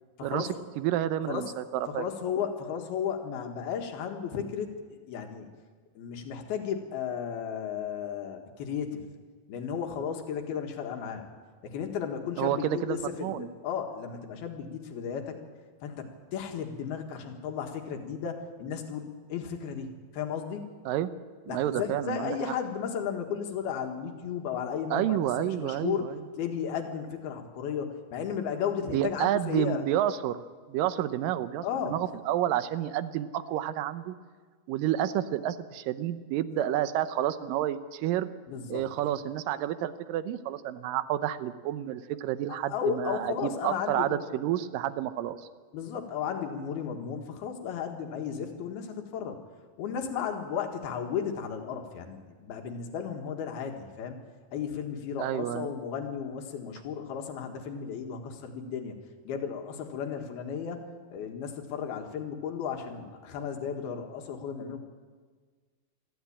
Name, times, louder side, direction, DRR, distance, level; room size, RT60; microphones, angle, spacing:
voice 1, 0.2-0.5 1.3-1.5 1.9-5.5 5.9-9.0 9.5-11.3 11.6-15.4 15.8-20.6 21.5-29.8 31.6-32.0 36.5-36.7 38.5-38.8 42.5-44.2 45.7-49.4 49.8-54.2 54.5-59.0 59.2-64.8, left 7 dB, 85° left, 4 dB, 3.5 m, -34 dB
voice 2, 0.8-2.1 12.4-13.5 20.9-21.1 21.5-22.3 24.9-26.2 28.9-30.4 30.7-34.2 34.7-38.3 38.7-45.4 55.2-55.7, right 12 dB, 75° right, 12 dB, 2.4 m, -30 dB
23.5 x 14.0 x 8.7 m, 1.5 s
omnidirectional pair, 4.3 m